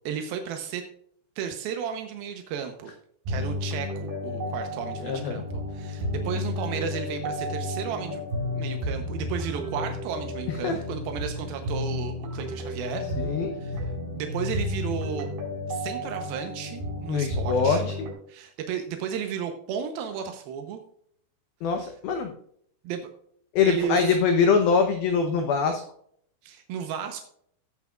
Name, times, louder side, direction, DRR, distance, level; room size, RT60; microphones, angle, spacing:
voice 1, 0.1-0.8 1.4-2.9 3.3-8.2 8.5-13.0 13.6-13.9 14.2-15.3 15.7-17.9 18.3-20.8 22.8-23.1 23.6-24.2 26.4-27.2, right 8 dB, 85° right, 5 dB, 2.1 m, -33 dB
sound 1, 3.3-18.1, left 1 dB, 55° right, 6.2 m, -32 dB
voice 2, 5.0-5.4 10.6-10.7 13.2-13.5 17.1-18.1 21.6-22.3 23.6-25.8, left 5 dB, 85° left, 5 dB, 2.1 m, -23 dB
15.5 x 8.3 x 2.4 m, 0.65 s
omnidirectional pair, 5.6 m